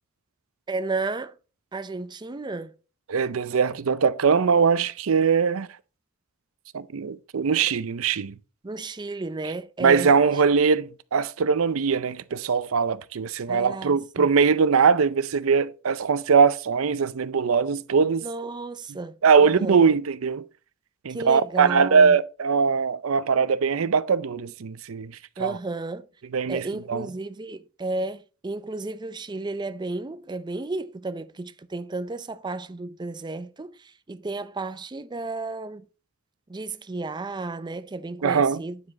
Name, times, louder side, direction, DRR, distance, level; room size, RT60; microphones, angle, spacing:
voice 1, 0.7-1.3 1.7-2.7 8.6-10.1 13.5-14.3 18.2-19.9 21.1-22.2 25.4-26.1 26.5-35.9 36.5-38.8, right 3 dB, 20° right, 0.5 m, -33 dB
voice 2, 3.1-5.7 6.7-8.3 9.8-18.3 19.2-20.4 21.0-25.1 25.4-25.6 26.3-27.1 38.2-38.6, right 5 dB, 80° right, 0.5 m, -21 dB
9.7 x 4.9 x 4.0 m
head